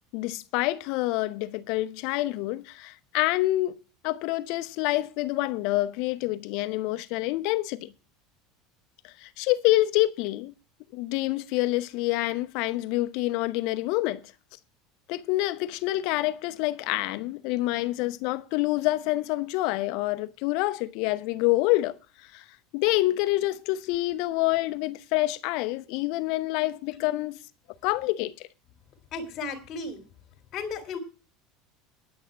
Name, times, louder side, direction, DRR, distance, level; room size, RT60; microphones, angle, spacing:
voice 1, 0.1-3.8 4.0-7.9 9.0-10.5 10.9-14.2 15.1-22.0 22.3-22.4 22.7-27.4 27.8-28.5, left 18 dB, 65° left, 0.9 m, -27 dB
voice 2, 29.1-30.0 30.5-31.0, left 4 dB, 50° left, 2.6 m, -34 dB
9.8 x 6.4 x 8.2 m
supercardioid pair, 105°, 0 cm